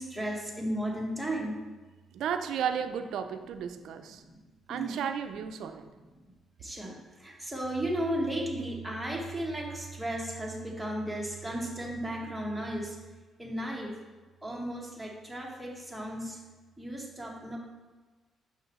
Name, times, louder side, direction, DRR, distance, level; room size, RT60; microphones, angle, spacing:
voice 1, 0.0-1.6 4.1-4.4 4.7-5.0 6.6-13.0 13.4-14.0 14.4-16.4 16.8-17.6, right 1 dB, ahead, -2 dB, 1.3 m, -35 dB
voice 2, 2.1-4.2 4.7-5.9, right 8 dB, 80° right, 8 dB, 0.4 m, -33 dB
6.4 x 5.3 x 3.1 m, 1.3 s
cardioid pair, 90°, 0 cm